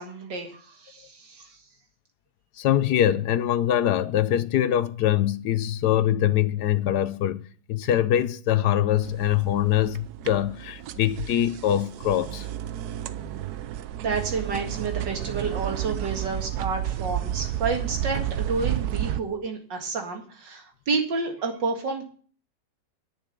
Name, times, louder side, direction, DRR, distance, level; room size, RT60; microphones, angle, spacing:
voice 1, 0.0-1.6 14.0-22.0, right 4 dB, 85° right, 2.6 m, -30 dB
voice 2, 2.6-7.4 7.7-12.5, left 11 dB, 70° left, 1.2 m, -23 dB
sound 1, 9.0-19.2, right 12 dB, 70° right, 1.1 m, -31 dB
10.5 x 6.1 x 8.1 m
omnidirectional pair, 1.9 m